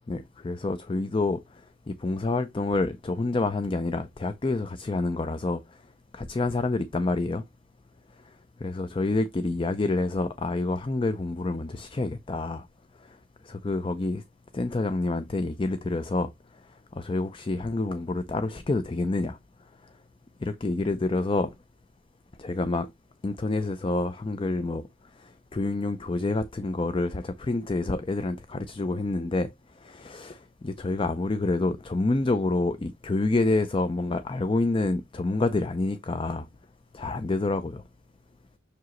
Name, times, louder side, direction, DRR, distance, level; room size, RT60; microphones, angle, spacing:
voice 1, 0.1-1.4 1.9-5.6 6.1-7.4 8.6-12.7 13.5-14.2 14.5-16.3 17.0-19.4 20.4-21.5 22.4-22.9 23.2-24.8 25.2-29.5 29.8-36.5 36.9-37.8, left 2 dB, 25° left, 0.4 m, -28 dB
6.7 x 4.8 x 3.0 m
head